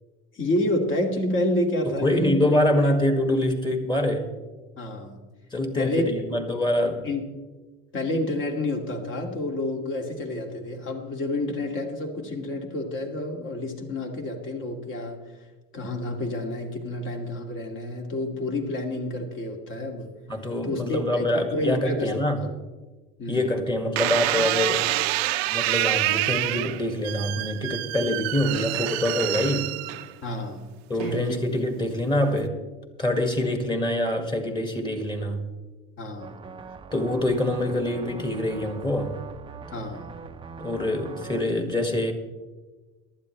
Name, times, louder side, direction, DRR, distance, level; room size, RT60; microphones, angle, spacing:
voice 1, 0.3-2.9 4.8-5.2 5.7-6.1 7.0-7.2 7.9-15.2 15.7-20.1 20.6-22.5 23.2-23.4 30.2-30.7 31.0-31.4 36.0-36.4 39.7-40.1 41.6-41.7, left 1 dB, 40° left, 2 dB, 2.3 m, -29 dB
voice 2, 1.9-4.3 5.5-7.1 20.3-22.4 23.3-24.9 25.5-29.7 30.9-32.6 33.0-35.4 36.9-39.2 40.6-42.1, left 1 dB, 15° left, 5 dB, 1.9 m, -25 dB
sound 1, 24.0-30.4 31.0-31.5, right 17 dB, 85° right, 0.7 m, -27 dB
sound 2, 36.2-41.4, right 5 dB, 15° right, 0.7 m, -42 dB
19.0 x 12.0 x 3.2 m, 1.2 s
supercardioid pair, 120°, 30 cm